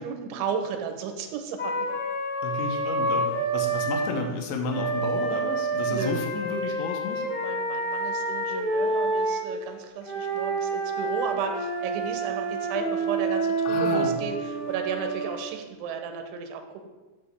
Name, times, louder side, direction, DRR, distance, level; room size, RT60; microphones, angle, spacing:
voice 1, 0.0-1.9 5.9-6.2 7.1-16.9, right 6 dB, 90° right, 6 dB, 3.0 m, -34 dB
Wind instrument woodwind instrument, 1.6-4.1 4.7-9.4 10.0-15.4, right 2 dB, 60° left, 0.5 m, -28 dB
voice 2, 2.4-3.3 3.5-7.2 13.7-14.2, left 2 dB, 80° left, 2 dB, 3.2 m, -31 dB
10.0 x 6.8 x 3.4 m, 1.2 s
omnidirectional pair, 5.3 m